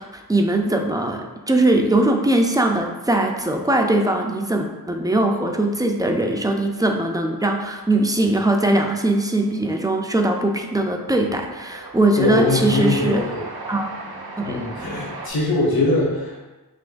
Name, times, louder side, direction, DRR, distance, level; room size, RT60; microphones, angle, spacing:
voice 1, 0.0-13.2 13.7-13.9 14.4-14.7, right 1 dB, 10° right, 2 dB, 0.3 m, -21 dB
Train, 8.2-15.3, right 3 dB, 70° right, 0.7 m, -38 dB
voice 2, 12.2-13.4 14.4-16.4, left 2 dB, 65° left, -3 dB, 1.2 m, -22 dB
5.7 x 3.0 x 2.5 m, 1.1 s
wide cardioid pair, 115°, 38 cm